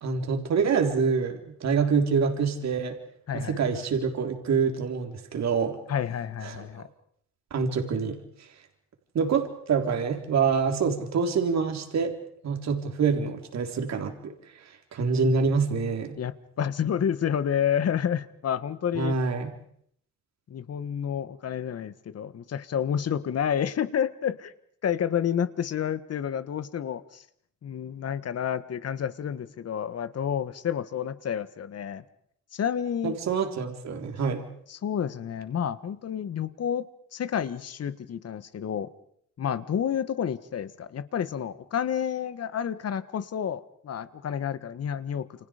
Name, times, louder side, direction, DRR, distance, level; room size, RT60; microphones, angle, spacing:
voice 1, 0.0-3.0 3.3-5.8 6.4-6.6 7.5-8.2 9.1-12.2 12.4-14.3 14.9-16.2 18.9-19.5 33.0-34.4, right 5 dB, 60° right, 5 dB, 3.8 m, -26 dB
voice 2, 3.3-3.7 5.9-6.9 16.2-19.1 20.5-24.5 24.8-27.2 27.6-32.0 32.5-33.2 34.7-36.9 37.1-38.9 39.4-45.5, left 8 dB, 55° left, 14 dB, 1.6 m, -30 dB
29.0 x 26.5 x 5.2 m, 0.66 s
cardioid pair, 90°, 30 cm